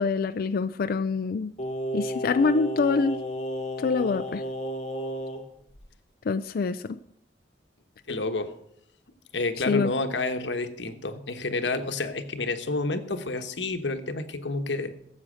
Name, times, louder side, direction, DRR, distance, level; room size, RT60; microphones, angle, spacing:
voice 1, 0.0-1.5 1.9-3.2 3.8-4.4 6.3-7.0 9.7-9.9, left 4 dB, 55° left, 10 dB, 0.4 m, -25 dB
Singing, 1.6-5.4 5.8-5.9, equal, 40° left, 1.9 m, -32 dB
voice 2, 8.1-8.5 9.3-14.9, left 3 dB, 85° left, 8 dB, 1.3 m, -29 dB
15.5 x 7.6 x 6.3 m, 0.73 s
head